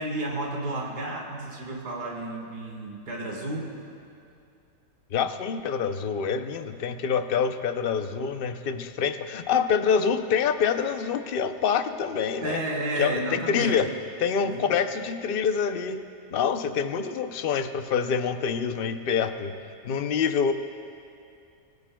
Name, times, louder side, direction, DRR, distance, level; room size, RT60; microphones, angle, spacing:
voice 1, 0.0-3.8 12.4-13.8 14.4-14.6, right 1 dB, 90° right, -1 dB, 2.2 m, -32 dB
voice 2, 5.1-12.6 13.0-13.9 14.2-16.0 16.3-19.5 19.8-20.5, left 6 dB, 60° left, 9 dB, 0.6 m, -26 dB
25.5 x 16.0 x 2.3 m, 2.5 s
omnidirectional pair, 1.6 m